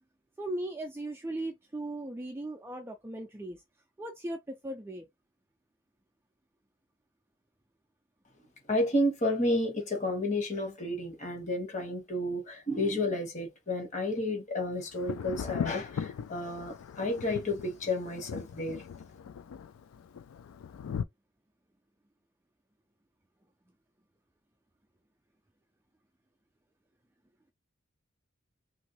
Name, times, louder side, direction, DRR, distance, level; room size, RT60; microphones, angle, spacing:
voice 1, 0.4-3.6 4.0-5.1, right 1 dB, 10° right, 0.3 m, -38 dB
voice 2, 8.7-18.8, left 1 dB, 35° left, 1.2 m, -31 dB
Thunder, 14.9-21.0, left 7 dB, 90° left, 0.3 m, -39 dB
3.0 x 2.6 x 2.9 m
head